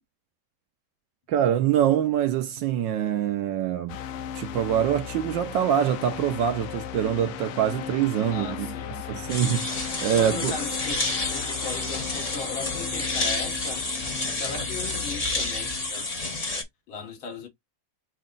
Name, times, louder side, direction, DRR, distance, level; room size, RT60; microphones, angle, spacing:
voice 1, 1.3-4.0 4.3-10.5, right 10 dB, 75° right, 1.2 m, -25 dB
sound 1, 3.9-15.9, left 9 dB, 85° left, 1.6 m, -37 dB
voice 2, 8.3-9.3 10.1-13.8 14.4-16.1 16.9-17.5, left 5 dB, 70° left, 2.1 m, -37 dB
sound 2, 9.3-16.6, left 2 dB, 30° left, 0.6 m, -30 dB
6.1 x 2.2 x 3.8 m
omnidirectional pair, 2.4 m